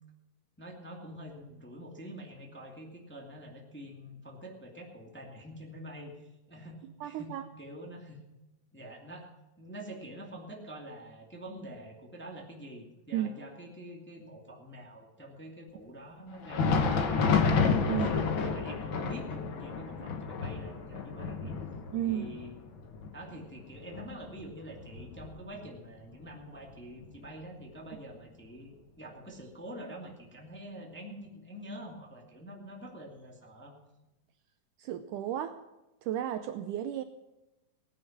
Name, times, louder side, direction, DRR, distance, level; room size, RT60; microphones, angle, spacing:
voice 1, 0.6-8.2 8.7-9.3 9.6-21.5 22.0-22.5 23.1-33.7, right 1 dB, 5° left, 0 dB, 1.6 m, -46 dB
voice 2, 7.0-7.5 13.1-13.3 17.9-18.1 21.4-21.6 21.9-22.3 34.8-35.6 36.0-37.0, right 11 dB, 75° right, 9 dB, 2.0 m, -33 dB
Thunder, 16.3-25.8 26.1-26.3 27.0-27.2 28.2-28.3, left 5 dB, 85° left, 1.0 m, -31 dB
18.5 x 9.8 x 6.0 m, 0.99 s
omnidirectional pair, 4.0 m